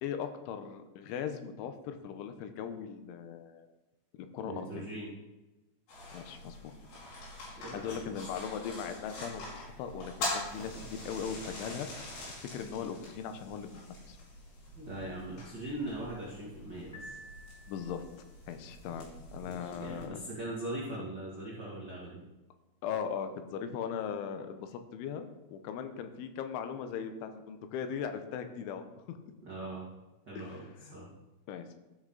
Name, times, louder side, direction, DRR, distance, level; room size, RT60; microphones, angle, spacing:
voice 1, 0.0-3.7 4.3-4.9 6.1-6.8 7.7-13.7 14.1-14.2 17.7-18.0 18.5-20.2 22.8-29.2 30.4-30.9 31.5-31.7, left 7 dB, 85° left, 8 dB, 3.2 m, -39 dB
voice 2, 4.4-5.1 7.6-8.2 14.7-17.2 18.9-19.0 19.4-22.2 29.4-29.9 30.2-31.1, right 1 dB, 75° right, -6 dB, 0.9 m, -41 dB
sound 1, 5.9-20.1, left 2 dB, 65° left, 5.7 m, -44 dB
Piano, 16.9-18.2, right 1 dB, 5° left, 1.6 m, -50 dB
13.0 x 6.6 x 3.8 m, 1.1 s
omnidirectional pair, 5.4 m